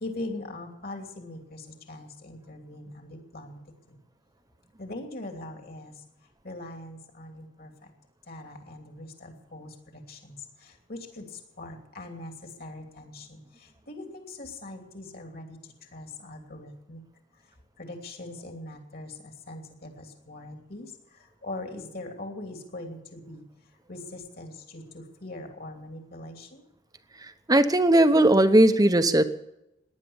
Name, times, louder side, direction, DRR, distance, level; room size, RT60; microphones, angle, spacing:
voice 1, 0.0-1.6 1.9-3.6 4.8-5.9 6.4-7.7 8.3-9.7 10.1-10.4 10.9-11.2 11.6-12.3 12.6-13.4 13.9-15.5 15.9-17.0 17.8-20.9 21.4-23.4 23.9-26.6, left 2 dB, 50° left, 3 dB, 2.9 m, -41 dB
voice 2, 27.5-29.2, right 1 dB, 20° right, 10 dB, 0.9 m, -18 dB
18.0 x 11.0 x 7.2 m, 0.87 s
head